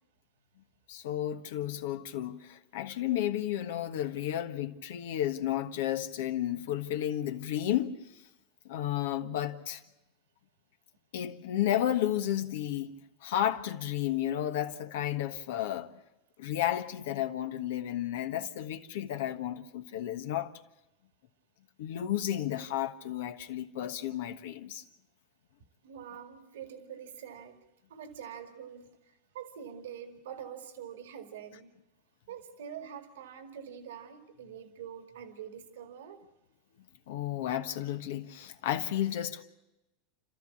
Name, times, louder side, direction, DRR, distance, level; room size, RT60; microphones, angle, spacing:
voice 1, 0.9-8.2 8.6-9.8 11.1-12.9 13.2-15.9 16.4-20.5 21.8-24.8 37.1-39.4, left 12 dB, 75° left, 1.3 m, -32 dB
voice 2, 25.8-27.6 27.9-29.0 29.3-31.7 32.3-36.2, right 8 dB, 80° right, 2.1 m, -45 dB
30.0 x 14.0 x 8.5 m
hypercardioid pair, 100°, 0 cm